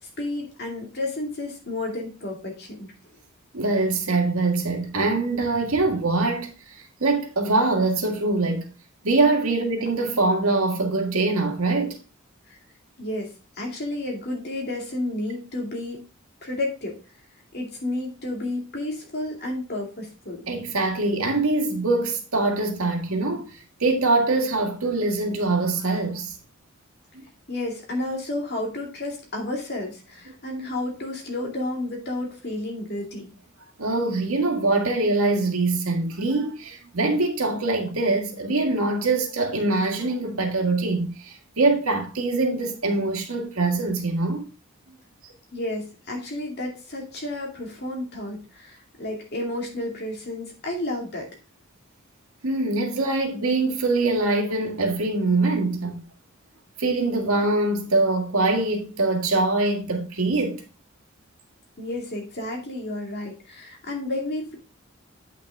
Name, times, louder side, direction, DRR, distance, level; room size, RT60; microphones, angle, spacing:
voice 1, 0.0-2.9 12.5-12.6 13.0-13.3 13.6-16.0 16.4-17.0 17.5-20.4 27.5-33.3 45.5-51.3 61.8-64.5, left 1 dB, 50° left, 2.4 m, -31 dB
voice 2, 3.5-8.7 9.0-12.0 20.5-26.4 33.8-44.4 52.4-56.0 56.8-60.6, right 2 dB, 90° right, 1.8 m, -23 dB
8.4 x 6.0 x 3.6 m
head